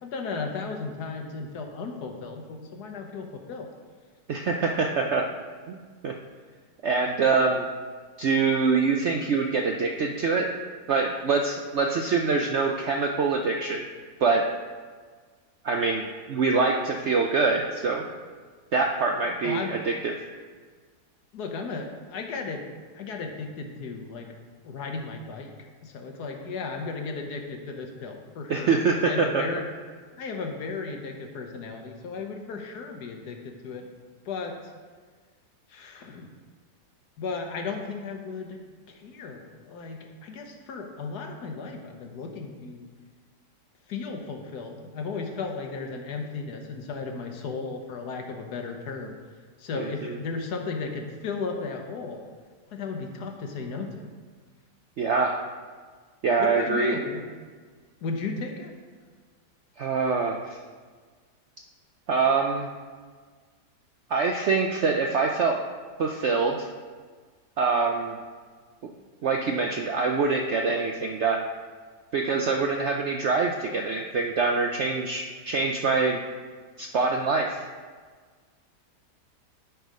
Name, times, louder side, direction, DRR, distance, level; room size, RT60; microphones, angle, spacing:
voice 1, 0.0-3.7 19.4-19.8 21.3-22.7 22.9-24.3 24.6-25.5 25.8-28.7 29.0-29.6 30.2-33.9 34.2-34.5 35.7-36.3 37.2-38.6 38.9-42.9 43.9-49.2 49.6-52.2 52.7-54.1 56.4-57.2 58.0-58.7, left 4 dB, 70° left, 3 dB, 1.5 m, -35 dB
voice 2, 4.3-5.3 5.7-5.8 6.0-6.1 6.8-7.6 8.2-10.5 10.9-13.8 14.2-14.5 15.6-18.0 18.7-20.1 28.5-29.4 49.8-50.2 55.0-55.4 56.2-57.0 59.8-60.4 62.1-62.7 64.1-65.6 66.0-66.7 67.6-68.2 69.2-71.4 72.1-76.2 76.8-77.6, right 4 dB, 65° right, 2 dB, 0.7 m, -24 dB
12.0 x 4.7 x 5.1 m, 1.5 s
omnidirectional pair, 1.8 m